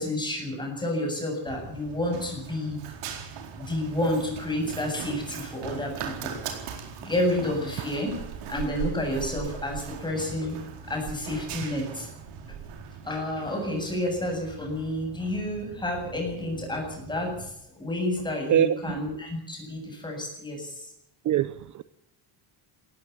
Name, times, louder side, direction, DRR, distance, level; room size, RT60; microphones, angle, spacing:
voice 1, 0.0-2.8 3.6-6.4 7.0-8.2 8.5-10.6 10.8-12.1 13.0-17.5 17.8-20.9, left 1 dB, 10° left, 7.8 m, -30 dB
Run, 1.5-17.5, right 7 dB, 85° right, 4.5 m, -40 dB
voice 2, 18.5-19.0 21.2-21.8, right 10 dB, 40° right, 0.7 m, -24 dB
18.0 x 15.5 x 9.7 m
cardioid pair, 165°, 49 cm